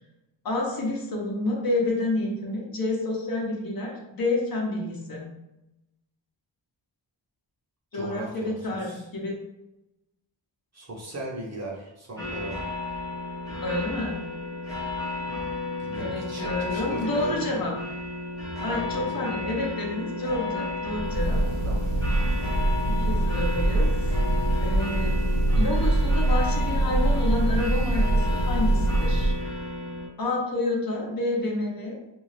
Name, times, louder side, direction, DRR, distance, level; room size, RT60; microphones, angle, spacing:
voice 1, 0.4-5.3 7.9-9.4 13.6-14.2 16.0-17.7 18.6-21.4 22.9-23.9 24.6-25.2 25.5-29.3 30.2-32.0, left 2 dB, 45° left, -1 dB, 0.8 m, -29 dB
voice 2, 7.9-9.1 10.7-12.7 15.8-17.6 18.7-19.2 21.6-21.9, right 2 dB, 35° right, -3 dB, 0.8 m, -37 dB
sound 1, 12.2-30.1, left 2 dB, 5° left, 0.8 m, -33 dB
Breathing / Bird, 20.9-29.5, right 1 dB, 65° right, 1.1 m, -24 dB
2.6 x 2.3 x 3.2 m, 0.92 s
wide cardioid pair, 90°, 48 cm